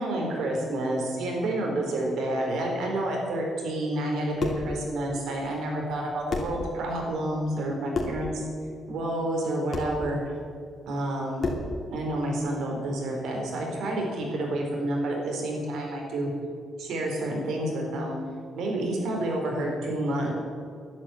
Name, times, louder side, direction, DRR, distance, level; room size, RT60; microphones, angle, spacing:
voice 1, 0.0-8.3 8.9-10.2 10.9-11.5 11.9-16.3 16.8-18.2 18.6-20.3, right 1 dB, 85° right, 0 dB, 4.3 m, -29 dB
sound 1, 4.1-4.7 5.9-6.0 6.3-6.6 7.9-8.3 9.7-10.0 11.4-11.7, left 3 dB, 45° left, 2.8 m, -30 dB
11.5 x 11.0 x 9.2 m, 2.2 s
cardioid pair, 140°, 0 cm